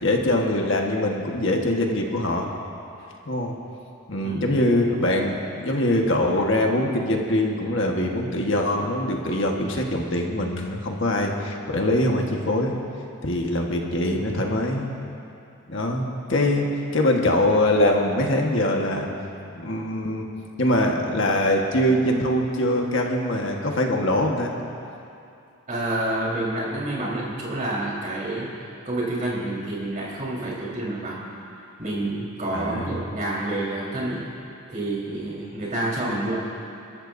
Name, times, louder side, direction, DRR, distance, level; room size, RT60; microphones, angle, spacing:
voice 1, 0.0-2.5 3.3-3.6 4.1-12.8 13.2-14.9 15.7-19.1 19.5-20.3 20.6-24.5 32.5-33.0, left 1 dB, 60° left, 1 dB, 1.4 m, -23 dB
voice 2, 4.2-4.5 25.7-28.5 28.9-31.2 31.8-34.2 34.7-36.5, right 1 dB, 40° right, -5 dB, 4.1 m, -28 dB
29.0 x 13.5 x 2.7 m, 2.6 s
head